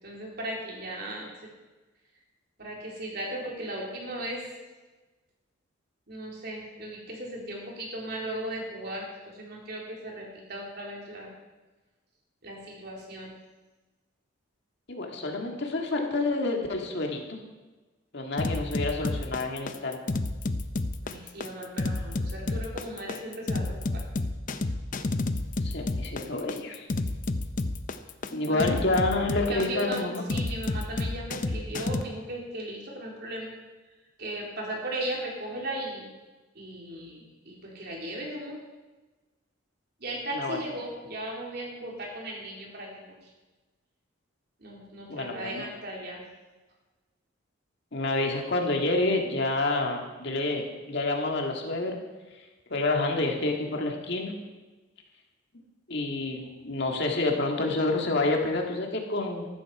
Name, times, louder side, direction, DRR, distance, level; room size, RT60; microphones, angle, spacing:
voice 1, 0.0-1.3 2.6-4.4 6.1-11.3 12.4-13.4 21.0-24.0 28.5-28.7 29.5-30.0 30.3-33.5 34.2-36.1 36.6-38.6 40.0-43.2 44.6-46.2, right 1 dB, 50° right, -2 dB, 3.7 m, -37 dB
voice 2, 14.9-17.4 18.1-20.0 25.6-26.9 28.3-30.3 40.3-40.6 45.1-45.7 47.9-52.0 52.7-54.3 55.9-59.5, left 2 dB, 60° left, 1 dB, 2.0 m, -28 dB
sound 1, 18.4-32.0, left 2 dB, 40° left, 0.7 m, -30 dB
14.0 x 13.0 x 4.9 m, 1.2 s
head